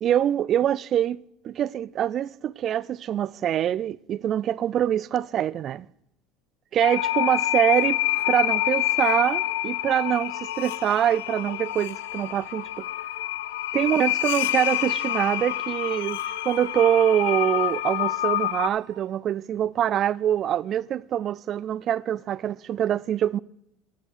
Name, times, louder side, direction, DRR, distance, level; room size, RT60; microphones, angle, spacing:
voice 1, 0.0-5.9 6.7-8.0 8.3-12.8 13.7-23.4, right 10 dB, 50° right, 0.3 m, -24 dB
sound 1, 6.8-18.7, left 15 dB, 85° left, 0.5 m, -27 dB
sound 2, 14.2-19.2, right 11 dB, 85° right, 1.3 m, -52 dB
12.5 x 8.6 x 6.5 m
hypercardioid pair, 85°, 0 cm